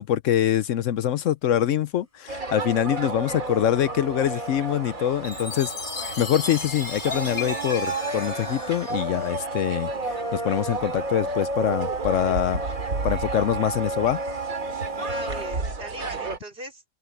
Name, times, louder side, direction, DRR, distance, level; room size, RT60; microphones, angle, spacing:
voice 1, 0.0-5.7 6.2-12.6 13.0-14.2, left 11 dB, 70° left, 1.0 m, -24 dB
sound 1, 1.8-15.7, equal, 25° left, 5.7 m, -51 dB
sound 2, 2.3-16.4, right 3 dB, 90° right, 3.0 m, -31 dB
Chime, 5.2-9.8, left 3 dB, 55° left, 3.3 m, -36 dB
voice 2, 15.0-17.0, right 1 dB, 45° right, 3.0 m, -39 dB
open air
omnidirectional pair, 1.4 m